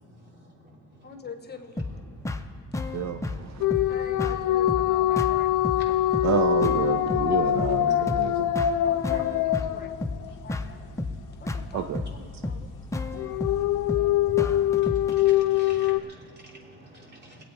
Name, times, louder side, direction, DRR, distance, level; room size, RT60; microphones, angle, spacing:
voice 1, 0.0-2.3 5.8-5.9 8.5-8.7 9.8-10.3 10.7-11.0 11.8-12.1 12.4-12.5 12.9-13.5 13.8-17.4, right 2 dB, 35° right, -2 dB, 3.2 m, -49 dB
voice 2, 1.0-1.9 2.9-3.0 3.9-5.7 8.8-9.9 10.4-10.8 11.4-13.1 13.9-14.2, left 4 dB, 35° left, 7 dB, 1.1 m, -44 dB
sound 1, 1.8-15.2, left 2 dB, 10° left, 0.7 m, -33 dB
voice 3, 2.9-3.6 6.2-8.5 11.7-12.0, right 8 dB, 60° right, 8 dB, 0.7 m, -29 dB
sound 2, 3.6-10.5 13.2-16.0, left 13 dB, 80° left, 0.5 m, -24 dB
21.5 x 8.5 x 4.6 m, 2.5 s
cardioid pair, 90°, 30 cm